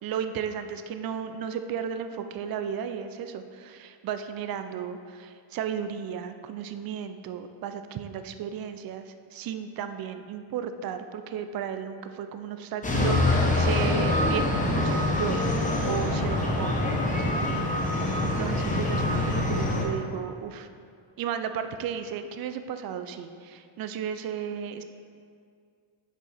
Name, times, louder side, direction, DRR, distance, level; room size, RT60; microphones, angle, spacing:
voice 1, 0.0-16.8 17.2-17.9 18.2-20.7 21.2-24.8, right 8 dB, 50° right, 9 dB, 0.5 m, -34 dB
sound 1, 12.8-19.8, left 2 dB, 15° left, 1.0 m, -25 dB
6.7 x 4.7 x 4.2 m, 2.2 s
cardioid pair, 130°, 48 cm